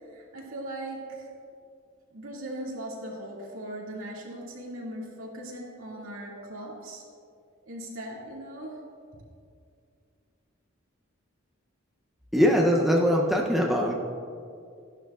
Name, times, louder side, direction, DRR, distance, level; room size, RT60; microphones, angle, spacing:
voice 1, 0.1-1.3 2.1-7.0 7.7-8.8, right 1 dB, 75° right, -4 dB, 2.3 m, -39 dB
voice 2, 12.3-13.9, equal, ahead, -2 dB, 0.7 m, -22 dB
13.5 x 11.5 x 2.4 m, 2.3 s
head